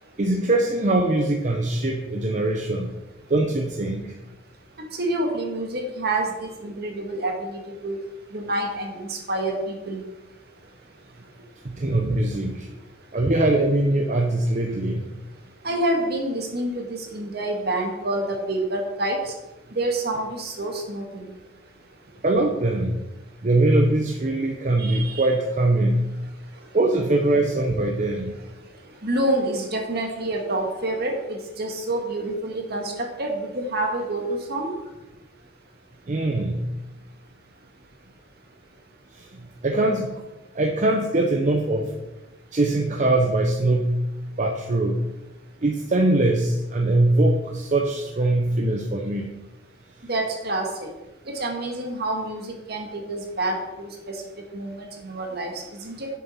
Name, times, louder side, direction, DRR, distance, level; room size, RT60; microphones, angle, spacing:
voice 1, 0.2-2.9 3.3-4.1 11.6-12.7 13.1-15.1 22.2-23.0 23.4-26.0 26.7-28.4 36.1-36.6 39.1-39.2 39.6-40.1 40.5-41.9 42.5-44.0 44.4-45.0 45.6-49.3, right 2 dB, 40° right, 3 dB, 0.7 m, -22 dB
voice 2, 4.9-8.0 8.3-10.0 15.6-19.3 19.7-21.3 24.8-25.3 29.0-34.7 50.0-50.9 51.3-54.2 54.5-56.1, right 1 dB, 60° right, 2 dB, 1.8 m, -28 dB
7.3 x 7.2 x 5.7 m, 1.0 s
head